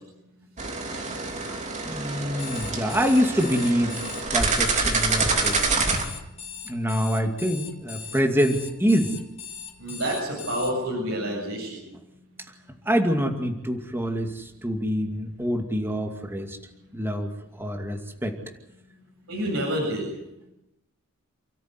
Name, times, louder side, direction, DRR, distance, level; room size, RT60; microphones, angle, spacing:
sound 1, 0.6-6.0, right 3 dB, 35° right, 3.3 m, -26 dB
voice 1, 1.8-3.9 4.3-5.9 6.7-9.1 12.9-16.6 16.9-17.3 17.6-18.3, equal, 10° right, 3 dB, 2.4 m, -25 dB
Alarm, 2.3-10.7, left 7 dB, 30° left, 3.6 m, -39 dB
voice 2, 9.8-11.8 19.3-20.0, equal, 70° right, -2 dB, 7.8 m, -28 dB
29.0 x 13.5 x 9.6 m, 0.87 s
head